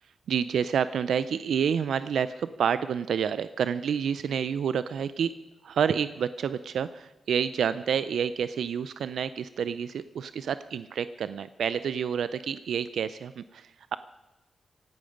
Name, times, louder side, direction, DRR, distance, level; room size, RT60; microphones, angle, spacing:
voice 1, 0.3-5.3 5.6-14.0, right 7 dB, 85° right, 14 dB, 0.4 m, -29 dB
16.5 x 12.0 x 5.1 m, 1.0 s
cardioid pair, 85°, 0 cm